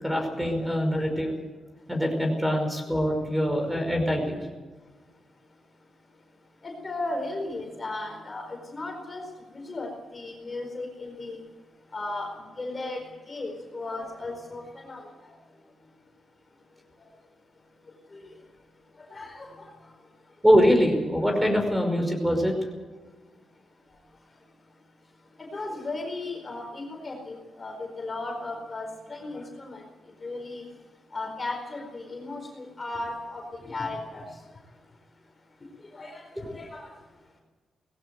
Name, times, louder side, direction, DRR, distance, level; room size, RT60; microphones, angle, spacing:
voice 1, 0.0-1.4 1.9-4.4 20.4-22.5, equal, 5° right, 4 dB, 5.3 m, -23 dB
voice 2, 6.6-9.2 9.5-11.4 11.9-12.3 12.6-13.0 13.3-15.0 18.1-18.2 19.1-19.7 25.5-29.8 30.2-30.7 31.1-34.2 35.9-36.9, left 2 dB, 30° left, 1 dB, 4.4 m, -35 dB
19.0 x 16.0 x 9.1 m, 1.4 s
cardioid pair, 105°, 0 cm